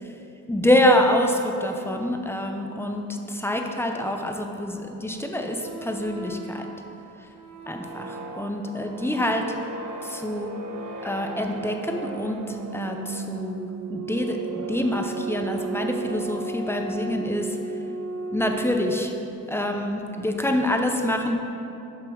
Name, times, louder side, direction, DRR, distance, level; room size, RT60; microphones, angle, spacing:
voice 1, 0.5-6.7 7.7-9.4 10.0-10.5 11.0-17.6 18.3-19.1 19.5-21.4, left 1 dB, 5° left, 3 dB, 0.7 m, -26 dB
sound 1, 5.5-19.3, right 3 dB, 55° right, 1.2 m, -35 dB
6.9 x 5.2 x 6.1 m, 2.8 s
cardioid pair, 110°, 35 cm